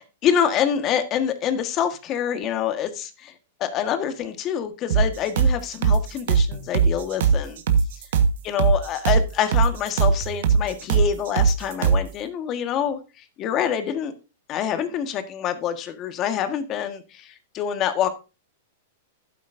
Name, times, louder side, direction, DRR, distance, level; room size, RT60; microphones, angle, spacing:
voice 1, 0.2-3.3 3.6-7.6 8.4-13.0 13.4-14.1 14.5-18.1, left 9 dB, 35° left, 9 dB, 1.5 m, -26 dB
sound 1, 4.9-12.1, right 6 dB, 70° right, 1.5 m, -20 dB
12.0 x 9.2 x 2.7 m, 0.30 s
hypercardioid pair, 115°, 0 cm